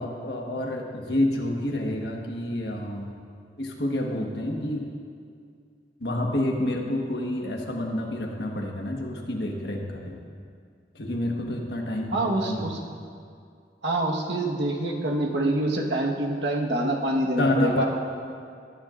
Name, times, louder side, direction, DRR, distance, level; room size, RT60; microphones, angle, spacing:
voice 1, 0.0-3.1 3.6-4.8 6.0-10.2 10.9-12.7 17.4-17.9, left 1 dB, 70° left, 0 dB, 1.4 m, -28 dB
voice 2, 12.1-12.8 13.8-17.9, right 1 dB, 85° right, 0 dB, 1.4 m, -26 dB
18.5 x 11.0 x 2.5 m, 2.3 s
head